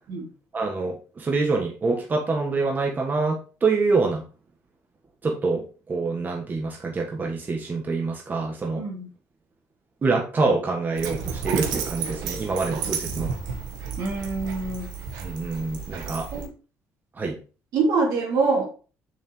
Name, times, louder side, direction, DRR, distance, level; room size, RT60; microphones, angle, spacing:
voice 1, 0.5-4.2 5.2-8.8 10.0-13.3 15.2-16.2 17.2-17.3, right 3 dB, 30° right, 0 dB, 1.4 m, -26 dB
voice 2, 8.8-9.1 14.0-14.8 16.3-16.5 17.7-18.7, right 3 dB, 70° right, -1 dB, 2.8 m, -24 dB
Dog, 11.0-16.5, right 6 dB, 90° right, 1.3 m, -32 dB
6.6 x 6.3 x 3.2 m, 0.37 s
cardioid pair, 100°, 6 cm